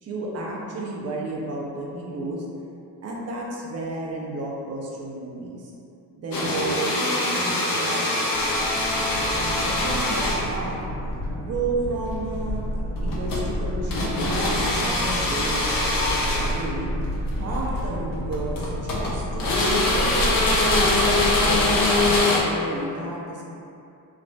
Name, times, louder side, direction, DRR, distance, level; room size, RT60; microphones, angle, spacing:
voice 1, 0.0-2.4 3.0-5.7 6.2-8.3 9.4-10.8 11.4-12.6 13.0-16.9 17.4-20.6 21.1-23.4, right 2 dB, 35° right, -3 dB, 0.6 m, -32 dB
sound 1, 6.3-10.7 13.0-13.5 13.9-16.6 17.6-17.8 18.3-19.1 19.4-22.4, left 2 dB, 50° left, 0.6 m, -23 dB
sound 2, 8.3-22.2, equal, 70° left, 1.0 m, -30 dB
3.2 x 2.0 x 2.6 m, 2.6 s
supercardioid pair, 80°, 43 cm